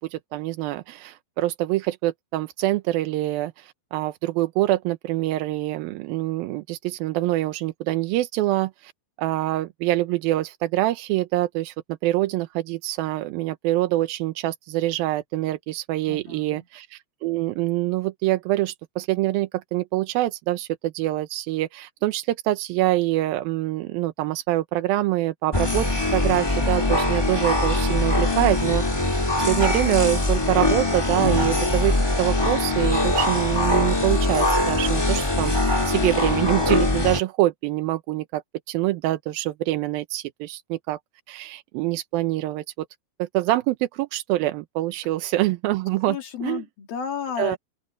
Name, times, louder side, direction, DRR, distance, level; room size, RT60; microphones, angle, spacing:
voice 1, 0.1-8.9 9.2-41.0 41.3-42.9 43.2-46.6 47.4-47.6, right 16 dB, 90° right, 2.6 m, -25 dB
voice 2, 16.1-16.6 46.1-47.6, left 7 dB, 80° left, 4.5 m, -32 dB
sound 1, 25.5-37.2, left 2 dB, 15° left, 0.9 m, -22 dB
open air
omnidirectional pair, 4.1 m